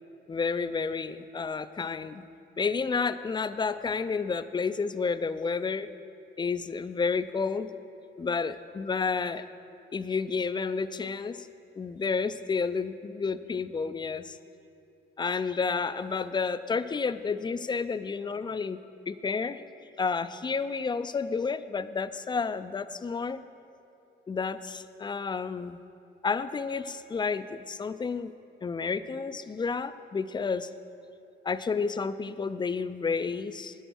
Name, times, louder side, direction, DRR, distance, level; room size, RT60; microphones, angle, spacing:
voice 1, 0.3-2.2 2.6-5.9 6.4-7.7 8.2-9.4 9.9-11.5 11.7-14.4 15.2-18.8 19.1-19.6 20.0-23.4 24.3-25.8 26.2-28.3 28.6-30.7 31.4-33.7, left 5 dB, 25° left, 13 dB, 0.4 m, -30 dB
9.8 x 7.9 x 6.2 m, 2.7 s
cardioid pair, 90°, 20 cm